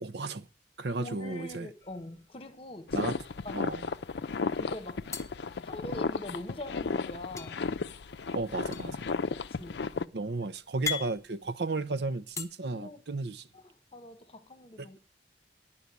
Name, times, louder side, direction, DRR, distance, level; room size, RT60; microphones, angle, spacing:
voice 1, 0.0-0.4 0.8-1.7 2.9-3.2 3.5-3.9 8.3-9.1 10.1-13.4 14.8-15.0, right 3 dB, 70° right, 0.7 m, -34 dB
voice 2, 1.0-3.1 3.4-3.6 4.5-5.0 5.6-7.6 9.3-9.8 12.7-13.0 13.5-15.0, left 1 dB, 35° left, 1.4 m, -43 dB
sound 1, 1.8-2.7 3.0-3.2 3.4-4.2 5.1-6.4 7.4-12.5, left 6 dB, 15° left, 1.0 m, -41 dB
sound 2, 2.9-10.0, left 4 dB, 75° left, 0.5 m, -34 dB
10.5 x 5.7 x 8.2 m
head